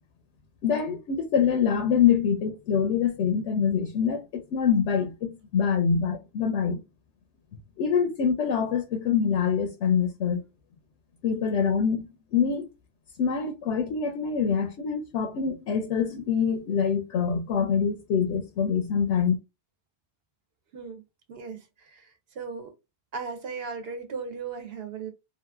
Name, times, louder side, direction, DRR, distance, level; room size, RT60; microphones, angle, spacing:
voice 1, 0.6-6.8 7.8-10.4 11.2-12.1 12.3-12.7 13.2-19.4, left 7 dB, 85° left, 0.9 m, -25 dB
voice 2, 20.7-21.0 21.3-22.7 23.1-25.1, right 5 dB, 65° right, 1.0 m, -37 dB
2.9 x 2.5 x 2.3 m
omnidirectional pair, 1.1 m